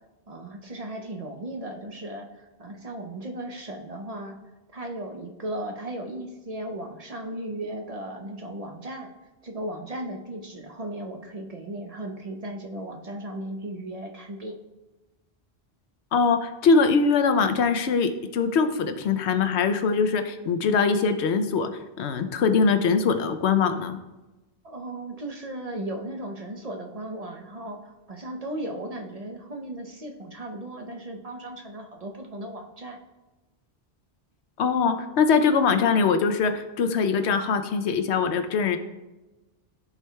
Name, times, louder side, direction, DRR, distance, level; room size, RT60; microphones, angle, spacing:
voice 1, 0.3-4.4 4.7-9.1 9.4-14.5 24.6-33.0, right 1 dB, 40° right, 2 dB, 0.7 m, -36 dB
voice 2, 16.1-21.7 22.0-24.0 34.6-38.8, left 5 dB, 85° left, 8 dB, 0.9 m, -22 dB
14.0 x 4.7 x 2.3 m, 1.1 s
omnidirectional pair, 1.1 m